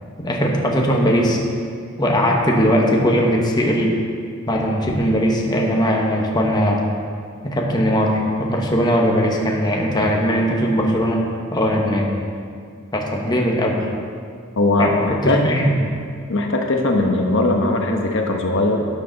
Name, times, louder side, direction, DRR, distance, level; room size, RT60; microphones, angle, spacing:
voice 1, 0.2-1.4 2.0-4.0 4.5-6.8 7.4-11.2 11.5-12.1 12.9-13.9 14.8-15.8, equal, 20° left, -1 dB, 1.1 m, -19 dB
voice 2, 14.6-15.4 16.3-18.9, left 2 dB, 60° left, 2 dB, 1.0 m, -19 dB
12.0 x 9.3 x 4.0 m, 2.2 s
head